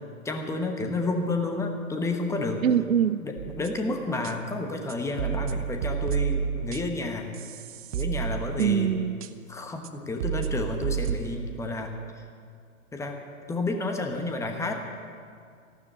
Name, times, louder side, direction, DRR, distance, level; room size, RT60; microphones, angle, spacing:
voice 1, 0.2-2.6 3.2-7.3 7.9-9.0 9.5-11.9 12.9-13.2 13.5-14.7, left 2 dB, 5° left, 4 dB, 1.0 m, -30 dB
voice 2, 2.6-3.2 8.6-9.2, right 8 dB, 75° right, 16 dB, 0.6 m, -23 dB
sound 1, 3.4-3.8 4.2-4.3 4.9-7.1 7.3-8.9 9.2-9.3 9.8-9.9 10.2-11.6, right 8 dB, 30° right, 0.5 m, -31 dB
14.0 x 12.0 x 7.5 m, 2.2 s
figure-of-eight pair, 115°, 41 cm